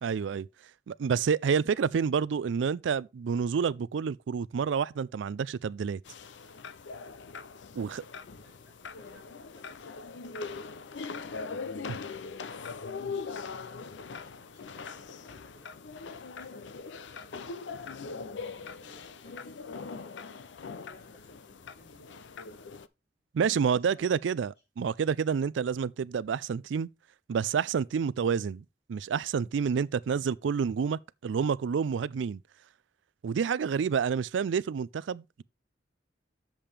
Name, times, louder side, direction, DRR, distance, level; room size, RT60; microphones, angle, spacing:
voice 1, 0.0-0.5 0.9-6.0 7.8-8.0 11.9-12.0 23.3-26.9 27.3-32.4 33.2-35.4, right 6 dB, 85° right, 0.4 m, -29 dB
sound 1, 6.0-22.9, left 4 dB, 80° left, 0.5 m, -41 dB
voice 2, 7.7-11.0 13.1-17.9 18.4-20.3 20.7-22.7 23.6-24.5, equal, 65° left, 3.4 m, -61 dB
8.6 x 7.4 x 3.3 m
head